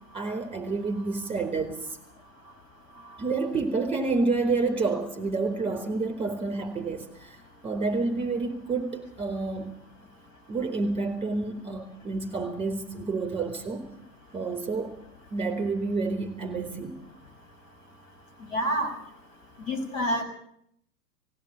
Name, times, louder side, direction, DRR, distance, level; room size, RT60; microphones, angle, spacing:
voice 1, 0.1-1.9 3.2-7.4 7.6-9.7 10.5-13.9 14.3-14.9 15.3-17.0, right 3 dB, 10° right, 7 dB, 4.2 m, -29 dB
voice 2, 18.5-18.9 19.7-20.2, equal, 50° left, 6 dB, 6.5 m, -27 dB
19.5 x 16.0 x 8.9 m, 0.72 s
figure-of-eight pair, 105°, 50 cm